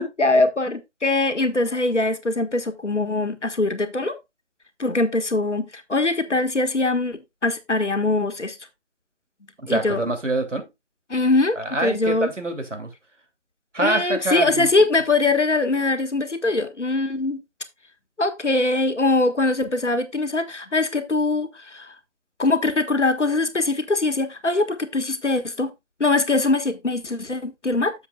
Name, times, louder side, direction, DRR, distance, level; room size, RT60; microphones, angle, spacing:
voice 1, 0.2-4.1 4.8-8.6 9.7-10.0 11.1-12.3 13.8-17.4 18.2-21.9 22.4-25.7 26.0-27.9, left 2 dB, 70° left, 1.6 m, -22 dB
voice 2, 9.6-10.6 11.6-12.9 13.7-14.7, right 2 dB, 80° right, 3.0 m, -25 dB
11.0 x 7.2 x 2.4 m
figure-of-eight pair, 170°, 37 cm